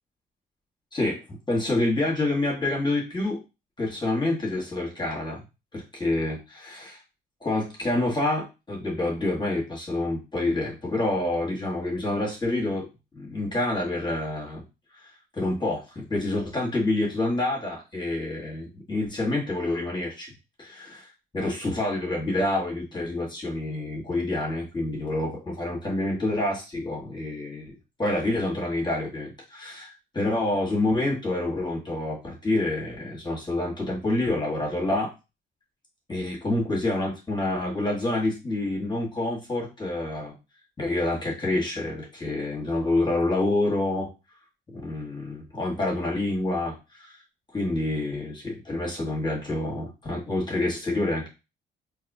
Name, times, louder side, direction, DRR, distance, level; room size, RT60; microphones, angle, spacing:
voice 1, 0.9-3.4 3.8-5.4 5.7-7.0 7.4-12.9 13.1-14.6 15.3-20.3 20.6-21.1 21.3-27.7 28.0-35.1 36.1-40.3 40.8-44.1 44.7-47.1 47.5-51.3, left 2 dB, 20° left, -3 dB, 1.5 m, -27 dB
4.0 x 2.8 x 2.7 m, 0.28 s
cardioid pair, 90°, 20 cm